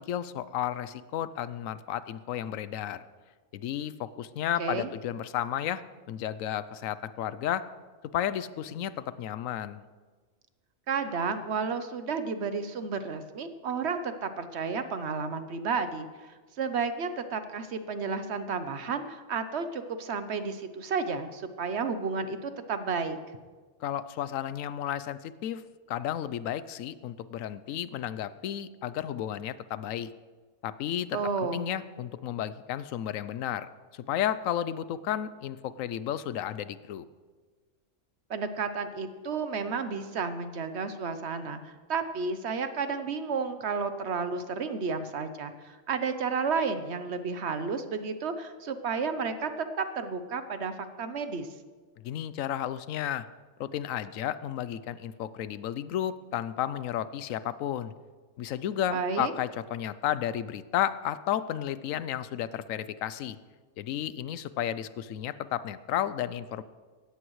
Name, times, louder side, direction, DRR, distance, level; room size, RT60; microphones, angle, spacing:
voice 1, 0.0-3.0 3.5-5.8 6.1-7.6 8.1-9.8 23.8-30.1 30.6-31.2 31.5-37.0 52.0-53.2 53.6-57.9 58.4-63.4 63.8-66.6, left 10 dB, 85° left, 15 dB, 1.0 m, -33 dB
voice 2, 4.6-4.9 10.9-16.1 16.6-23.2 31.1-31.7 38.3-51.5 58.9-59.3, right 5 dB, 60° right, 10 dB, 1.1 m, -32 dB
17.5 x 14.0 x 3.1 m, 1.4 s
omnidirectional pair, 1.3 m